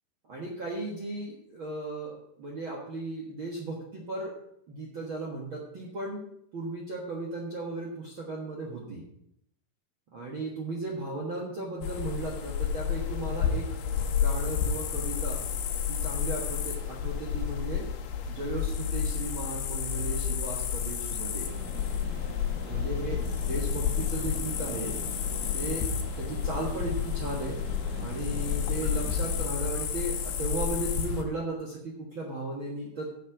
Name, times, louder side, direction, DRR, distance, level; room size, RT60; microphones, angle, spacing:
voice 1, 0.3-4.3 4.7-6.3 6.5-9.0 10.1-13.7 14.1-15.5 15.9-17.8 18.3-21.5 22.7-25.0 25.5-25.9 26.2-27.6 28.0-33.1, right 2 dB, 85° right, -2 dB, 1.1 m, -36 dB
sound 1, 11.8-31.2, left 8 dB, 75° left, 2.9 m, -31 dB
sound 2, 21.5-29.4, right 2 dB, 55° right, 2.8 m, -43 dB
7.6 x 7.5 x 7.3 m, 0.74 s
omnidirectional pair, 4.9 m